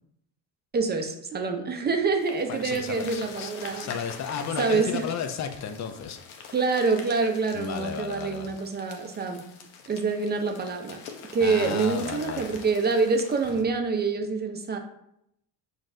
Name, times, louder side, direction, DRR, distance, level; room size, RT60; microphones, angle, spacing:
voice 1, 0.7-3.9 4.6-5.0 6.5-9.4 9.9-11.0 11.3-14.8, right 4 dB, 20° right, 5 dB, 0.5 m, -26 dB
sound 1, 2.2-13.6, left 5 dB, 80° left, 0.8 m, -44 dB
voice 2, 2.5-6.2 7.5-8.5 11.4-12.5, left 7 dB, 35° left, 8 dB, 0.5 m, -34 dB
5.9 x 2.6 x 2.6 m, 0.77 s
supercardioid pair, 90°, 50 cm